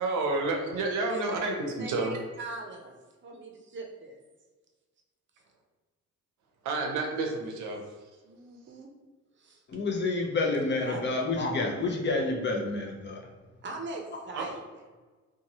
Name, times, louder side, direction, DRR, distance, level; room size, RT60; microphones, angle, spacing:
voice 1, 0.0-2.2 6.6-7.8 14.3-14.4, right 3 dB, 85° right, 2 dB, 0.7 m, -30 dB
voice 2, 1.8-2.1 2.4-4.2 8.2-8.9 9.4-9.6 10.7-11.0 13.6-14.6, right 3 dB, 40° right, 2 dB, 0.6 m, -40 dB
voice 3, 9.7-13.3, left 3 dB, 35° left, 0 dB, 0.7 m, -29 dB
2.9 x 2.3 x 2.8 m, 1.3 s
cardioid pair, 90°, 30 cm